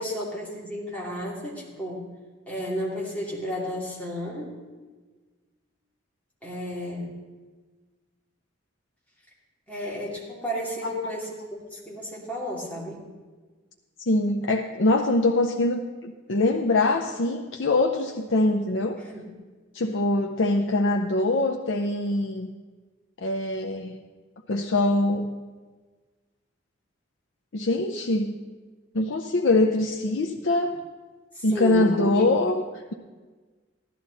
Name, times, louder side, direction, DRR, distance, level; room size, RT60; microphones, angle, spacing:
voice 1, 0.0-2.0 2.5-4.6 6.4-7.1 9.7-13.0 19.0-19.3 31.3-32.3, equal, 10° left, -5 dB, 2.8 m, -33 dB
voice 2, 14.0-19.0 19.7-22.5 23.2-24.0 24.5-25.3 27.5-28.3 28.9-30.8 31.4-32.6, left 2 dB, 80° left, 2 dB, 0.7 m, -23 dB
15.0 x 11.5 x 4.1 m, 1.4 s
head